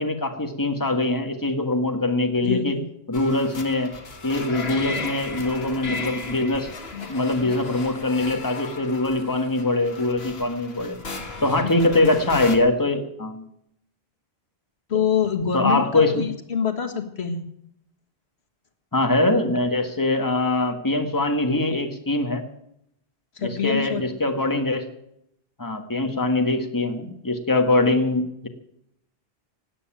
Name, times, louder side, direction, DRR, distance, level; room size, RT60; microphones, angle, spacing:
voice 1, 0.0-2.8 3.1-3.9 4.2-6.7 7.1-11.0 11.4-13.4 15.5-16.2 18.9-22.4 23.4-24.8 25.6-28.5, left 2 dB, 20° left, 5 dB, 1.6 m, -23 dB
voice 2, 2.4-2.8 11.9-12.0 14.9-17.4 23.4-24.0, left 7 dB, 90° left, 7 dB, 1.9 m, -25 dB
sound 1, 3.1-12.6, left 3 dB, 70° left, 2.0 m, -35 dB
17.5 x 8.4 x 8.9 m, 0.76 s
omnidirectional pair, 1.1 m